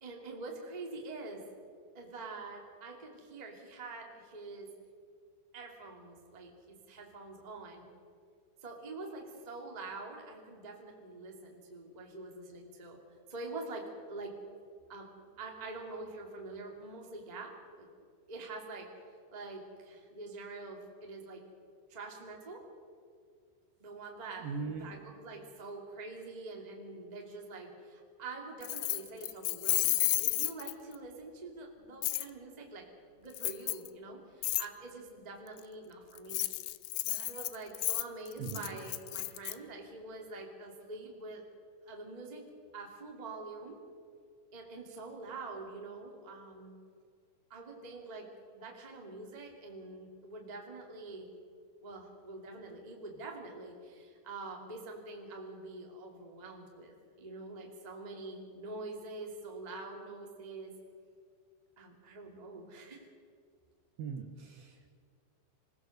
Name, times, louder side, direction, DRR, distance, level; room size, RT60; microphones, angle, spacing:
voice 1, 0.0-1.4 1.9-4.7 5.5-7.8 8.6-13.0 13.3-14.3 14.9-15.1 15.4-17.9 18.3-18.9 19.3-21.4 21.9-22.6 23.8-24.5 24.8-32.9 33.2-36.5 37.0-41.4 41.8-42.4 42.7-43.8 44.5-46.8 47.5-48.3 48.5-51.3 51.8-60.7 61.8-63.1, right 3 dB, 15° right, 0 dB, 1.7 m, -45 dB
voice 2, 24.4-24.9 38.4-38.8 64.0-64.9, right 5 dB, 65° right, 4 dB, 2.6 m, -40 dB
Keys jangling, 28.6-31.0 32.0-32.3 33.3-33.9 34.4-34.7 36.2-39.5, left 19 dB, 80° left, 2.8 m, -32 dB
27.0 x 16.5 x 6.6 m, 2.2 s
omnidirectional pair, 5.3 m